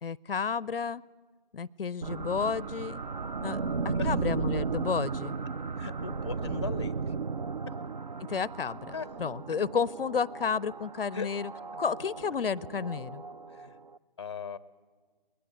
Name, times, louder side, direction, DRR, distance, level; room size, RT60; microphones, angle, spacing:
voice 1, 0.0-1.0 1.5-3.0 3.4-3.6 3.8-5.4 8.3-11.5 11.8-13.2, left 6 dB, 75° left, 23 dB, 0.6 m, -31 dB
sound 1, 2.0-14.0, right 5 dB, 50° right, 0.6 m, -35 dB
voice 2, 5.8-7.1 8.9-9.1 11.1-11.3 13.5-13.8 14.2-14.6, left 5 dB, 30° left, 17 dB, 0.5 m, -38 dB
21.5 x 19.0 x 8.2 m, 1.5 s
figure-of-eight pair, 160°, 29 cm